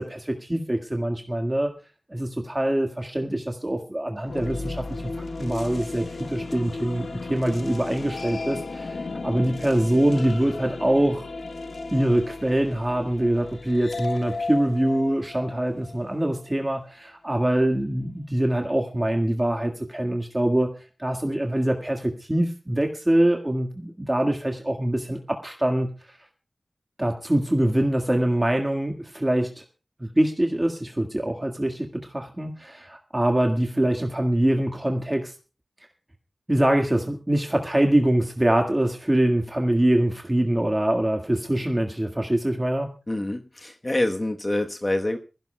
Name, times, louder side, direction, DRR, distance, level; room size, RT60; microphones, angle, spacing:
voice 1, 0.0-1.7 2.1-5.1 5.4-11.3 11.9-20.7 21.0-25.9 27.0-29.6 30.0-35.3 36.5-42.9, right 1 dB, 20° right, 3 dB, 1.8 m, -24 dB
sound 1, 4.2-16.4, left 3 dB, 85° left, 1.4 m, -34 dB
voice 2, 43.1-45.2, left 1 dB, 30° left, 5 dB, 1.1 m, -26 dB
22.0 x 16.0 x 2.2 m, 0.32 s
wide cardioid pair, 60°, 0 cm